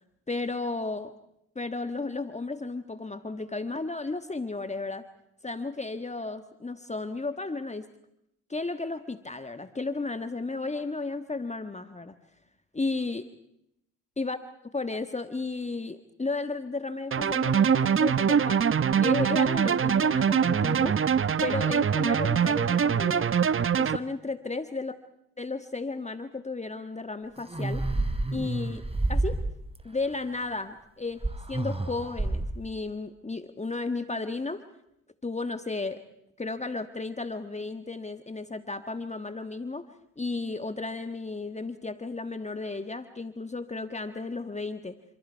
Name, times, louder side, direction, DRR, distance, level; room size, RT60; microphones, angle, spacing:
voice 1, 0.3-1.1 1.5-5.1 5.4-7.8 8.5-12.1 12.7-13.3 14.2-14.4 14.7-18.6 19.0-21.0 21.4-23.3 23.8-24.9 25.4-27.8 28.3-28.8 29.1-29.4 29.8-31.2 31.5-34.6 35.2-36.0 36.4-39.9 40.2-45.0, left 3 dB, 15° left, 10 dB, 1.5 m, -33 dB
sound 1, 17.1-24.0, right 7 dB, 35° right, 1.0 m, -23 dB
sound 2, 27.4-29.8 31.2-32.7, right 2 dB, 15° right, 3.1 m, -29 dB
29.0 x 27.0 x 4.7 m, 0.78 s
hypercardioid pair, 50°, 38 cm